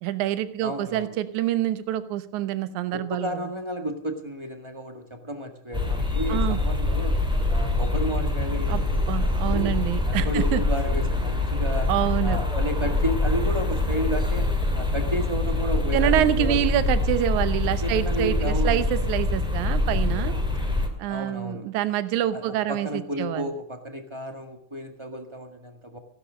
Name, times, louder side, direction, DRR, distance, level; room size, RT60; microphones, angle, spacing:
voice 1, 0.0-3.5 6.3-6.6 8.7-8.8 9.1-10.6 11.9-12.4 15.9-20.3 21.0-23.5, right 12 dB, 75° right, 13 dB, 2.3 m, -26 dB
voice 2, 0.6-1.1 2.9-7.2 7.5-9.7 10.0-11.9 12.2-14.5 14.7-16.9 17.8-18.8 21.1-21.7 22.3-26.0, equal, 15° right, 5 dB, 0.9 m, -32 dB
sound 1, 5.7-20.9, left 2 dB, ahead, 2.0 m, -25 dB
16.5 x 12.0 x 6.3 m, 0.63 s
omnidirectional pair, 3.6 m